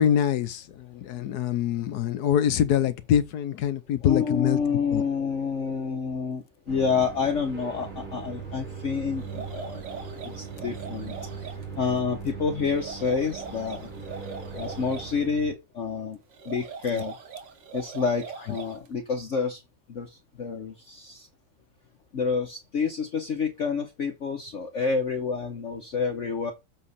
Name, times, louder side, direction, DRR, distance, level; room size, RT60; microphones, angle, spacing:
voice 1, 0.0-4.6 4.9-5.0 16.9-17.0, left 9 dB, 70° left, 1.2 m, -24 dB
voice 2, 4.0-9.8 10.2-11.1 11.8-13.9 14.5-16.2 16.4-17.1 17.7-19.6 19.9-20.1 20.4-21.3 22.1-26.5, left 5 dB, 50° left, 1.1 m, -28 dB
sound 1, 6.7-15.5, right 5 dB, 45° right, 2.5 m, -39 dB
sound 2, 9.2-11.6 12.7-15.1 16.3-18.9, right 6 dB, 80° right, 1.9 m, -41 dB
7.9 x 3.6 x 5.4 m
omnidirectional pair, 2.0 m